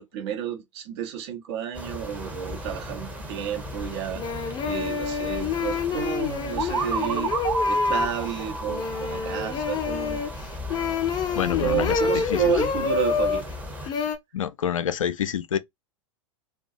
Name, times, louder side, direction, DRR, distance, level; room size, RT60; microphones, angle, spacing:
voice 1, 0.0-7.3 7.7-10.3 11.6-13.4, right 9 dB, 55° right, 0.8 m, -31 dB
sound 1, 1.7-13.9, left 1 dB, 10° right, 0.7 m, -37 dB
sound 2, 3.7-3.8 4.2-13.4 13.9-14.2, left 6 dB, 25° left, 0.5 m, -28 dB
sound 3, 6.6-10.3, right 2 dB, 75° right, 0.5 m, -29 dB
voice 2, 11.3-12.4 13.9-14.0 14.3-15.6, left 9 dB, 80° left, 0.4 m, -27 dB
2.3 x 2.2 x 2.6 m
figure-of-eight pair, 95°, 17 cm